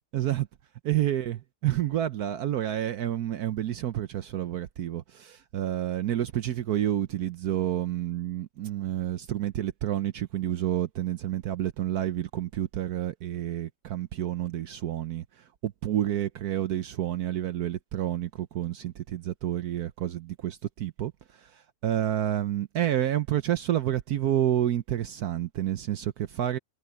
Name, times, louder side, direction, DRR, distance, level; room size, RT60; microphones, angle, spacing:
voice 1, 0.1-0.5 0.8-15.2 15.6-26.6, right 12 dB, 65° right, 1.1 m, -29 dB
omnidirectional pair, 1.9 m